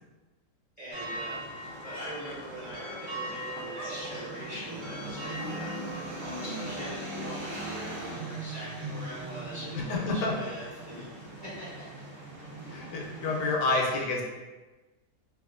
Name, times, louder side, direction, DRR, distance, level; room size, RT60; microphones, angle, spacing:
voice 1, 0.8-1.4 1.8-11.1 11.4-11.8 13.8-14.0, equal, 15° right, -10 dB, 0.6 m, -42 dB
sound 1, 0.9-13.6, right 1 dB, 65° right, 0.7 m, -39 dB
voice 2, 9.9-10.3 12.7-14.2, left 2 dB, 75° left, 0 dB, 1.1 m, -28 dB
2.9 x 2.4 x 2.4 m, 1.2 s
omnidirectional pair, 1.9 m